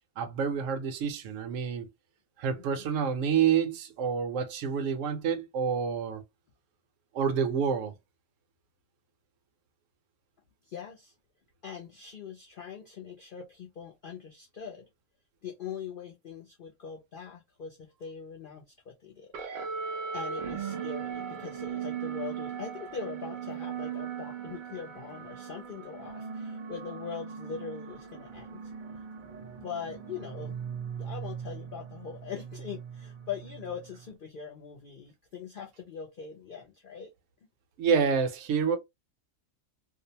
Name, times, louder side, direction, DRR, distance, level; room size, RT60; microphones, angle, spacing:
voice 1, 0.2-1.9 2.4-6.2 7.1-7.9 37.8-38.8, right 6 dB, 70° right, 0.9 m, -28 dB
voice 2, 10.6-11.1 11.6-14.9 15.4-19.3 20.1-28.7 29.6-30.6 31.0-37.1, left 7 dB, 70° left, 0.5 m, -42 dB
sound 1, 19.3-34.1, right 7 dB, 85° right, 0.4 m, -39 dB
2.6 x 2.0 x 2.7 m
omnidirectional pair, 1.5 m